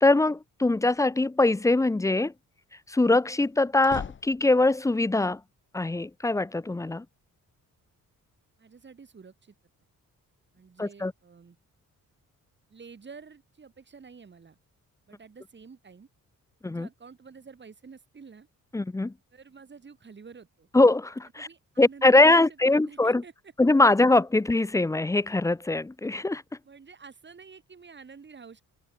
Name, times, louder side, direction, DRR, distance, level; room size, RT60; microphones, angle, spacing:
voice 1, 0.0-2.3 2.9-5.4 5.7-7.0 10.8-11.1 16.6-16.9 18.7-19.1 20.7-21.5 21.8-23.2 23.6-26.4, left 2 dB, 10° left, 0.5 m, -22 dB
sound 1, 0.6-1.2 3.4-4.9, left 7 dB, 35° left, 1.2 m, -41 dB
voice 2, 8.6-9.5 10.5-11.6 12.7-14.6 15.1-16.1 16.6-18.5 19.3-20.7 21.4-23.3 26.6-28.6, right 5 dB, 35° right, 7.3 m, -49 dB
wide cardioid pair, 155°, 33 cm